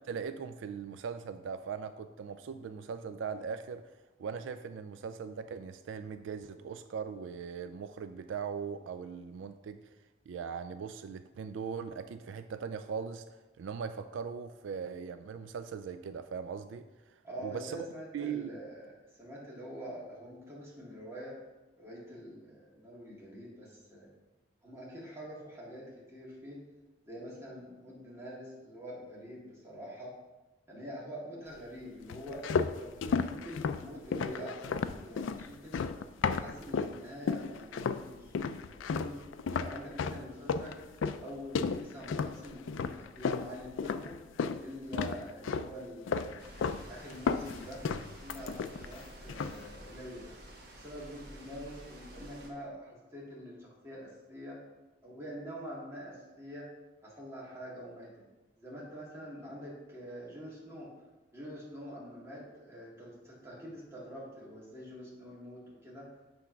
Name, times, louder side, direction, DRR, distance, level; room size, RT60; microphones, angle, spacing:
voice 1, 0.0-3.8 4.2-9.8 10.3-13.2 13.6-16.9 17.4-17.9 18.1-18.5, right 6 dB, 80° right, 10 dB, 0.3 m, -39 dB
voice 2, 17.2-21.3 21.8-24.1 24.6-26.6 27.0-30.1 30.7-32.4 32.8-35.9 36.4-39.2 39.5-40.8 41.2-44.2 44.6-46.4 46.9-47.8 48.2-50.3 50.7-54.6 55.0-56.7 57.0-58.1 58.6-60.9 61.3-66.1, equal, 15° right, -6 dB, 2.0 m, -45 dB
sound 1, 32.1-37.0 37.3-38.0 38.3-44.6 44.9-45.7 46.1-46.8 47.1-49.0 49.3-49.7, left 5 dB, 90° left, 0.4 m, -33 dB
sound 2, 46.4-52.5, right 1 dB, 55° right, 1.2 m, -50 dB
7.8 x 3.6 x 5.8 m, 1.1 s
head